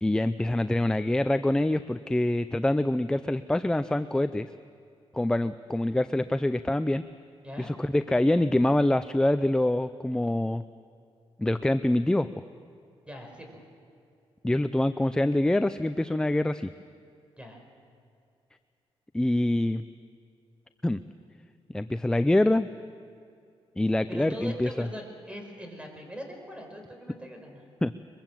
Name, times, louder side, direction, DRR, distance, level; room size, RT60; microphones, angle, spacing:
voice 1, 0.0-4.5 5.1-7.0 7.6-10.6 11.4-12.3 14.4-16.7 19.1-19.8 20.8-21.0 21.7-22.7 23.8-24.9 27.8-27.9, left 1 dB, 5° left, 12 dB, 0.5 m, -25 dB
voice 2, 13.1-13.6 17.4-17.6 24.1-27.6, equal, 10° right, 3 dB, 5.2 m, -41 dB
23.0 x 23.0 x 7.6 m, 2.4 s
cardioid pair, 100°, 10 cm